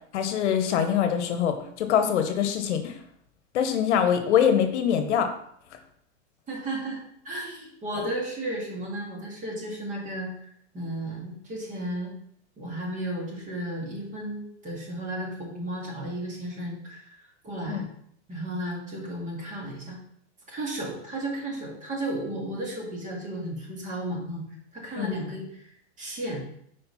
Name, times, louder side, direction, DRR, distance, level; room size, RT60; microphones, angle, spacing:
voice 1, 0.1-2.9 3.5-5.3 17.7-17.9 25.0-25.1, left 8 dB, 70° left, 7 dB, 1.0 m, -24 dB
voice 2, 6.5-12.1 12.6-17.8 18.3-20.0 20.5-24.4 24.7-25.7 26.0-26.4, right 1 dB, 20° right, -2 dB, 2.1 m, -34 dB
5.1 x 4.4 x 5.5 m, 0.68 s
supercardioid pair, 145°, 36 cm